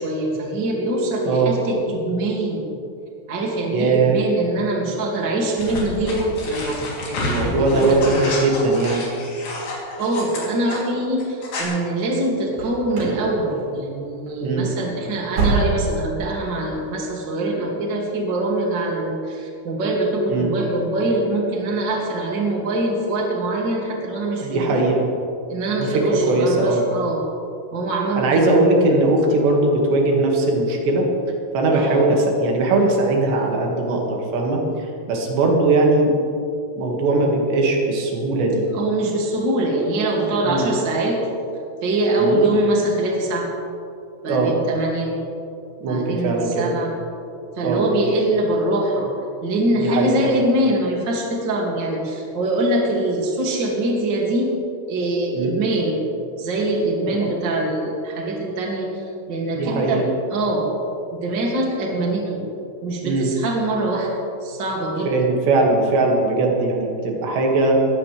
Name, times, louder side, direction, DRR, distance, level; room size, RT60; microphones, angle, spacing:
voice 1, 0.0-2.7 3.3-6.8 7.0-8.2 10.0-24.8 25.5-27.2 27.7-28.5 31.7-32.1 38.6-41.2 41.8-43.5 44.2-45.1 45.8-46.9 47.6-49.1 49.4-54.5 54.9-56.0 56.4-60.0 60.3-60.7 61.1-62.4 62.8-64.1 64.4-65.1, right 1 dB, 35° right, -2 dB, 2.3 m, -23 dB
voice 2, 1.2-1.5 3.7-4.2 7.2-9.1 14.4-14.7 20.3-20.5 24.4-25.1 25.8-26.8 28.2-31.1 31.5-36.1 36.7-38.6 40.5-40.7 42.2-42.4 44.3-44.5 45.8-46.7 47.6-47.8 49.8-50.2 55.3-55.5 57.2-57.3 59.5-60.1 63.0-63.3 65.1-67.8, right 2 dB, 85° right, 0 dB, 4.3 m, -20 dB
sound 1, 5.6-10.8 11.2-11.6, left 2 dB, 70° left, 5.2 m, -29 dB
sound 2, 12.5-13.2 13.5-14.0 14.3-14.4 14.8-16.1 16.4-16.5 17.0-17.1, right 3 dB, 60° right, 5.9 m, -25 dB
21.0 x 16.0 x 3.4 m, 2.6 s
omnidirectional pair, 4.8 m